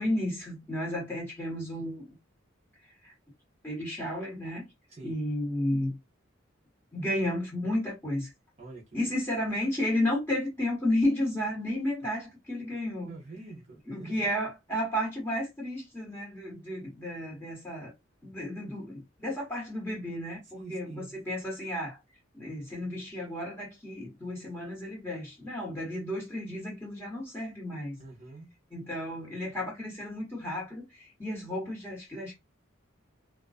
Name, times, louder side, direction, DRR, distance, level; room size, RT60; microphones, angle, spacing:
voice 1, 0.0-2.1 3.0-3.1 3.6-4.7 5.0-6.0 6.9-8.3 8.9-13.1 13.9-17.9 18.2-22.0 22.3-28.0 28.7-32.3, left 1 dB, 15° left, 1.3 m, -32 dB
voice 2, 13.1-14.3 20.5-21.1 28.0-28.5, right 3 dB, 35° right, 0.6 m, -45 dB
2.3 x 2.3 x 2.4 m
head